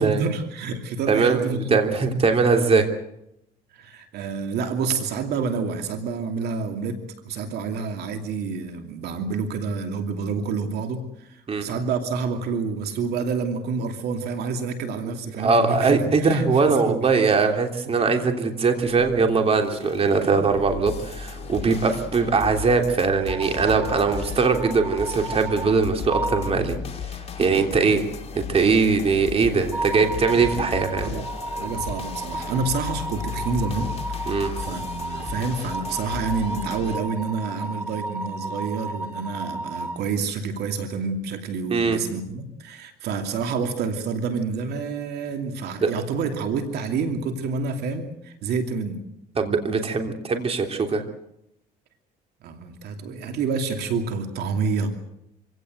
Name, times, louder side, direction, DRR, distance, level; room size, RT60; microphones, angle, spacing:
voice 1, 0.0-2.2 3.7-7.0 7.2-17.1 18.0-18.1 30.5-30.7 31.0-31.2 31.6-49.0 52.4-54.9, right 4 dB, 70° right, 6 dB, 2.7 m, -28 dB
voice 2, 1.1-2.8 11.5-11.7 15.0-15.1 15.4-26.8 27.4-28.1 28.3-31.1 34.3-34.5 41.7-42.0 45.8-45.9 49.3-51.0, right 4 dB, 35° right, 4 dB, 3.2 m, -21 dB
sound 1, 18.8-37.0, left 6 dB, 35° left, 2.8 m, -35 dB
sound 2, 23.3-25.8 26.1-26.5 29.7-40.0, right 2 dB, 10° right, 2.1 m, -33 dB
25.5 x 17.0 x 8.0 m, 0.81 s
cardioid pair, 110°, 17 cm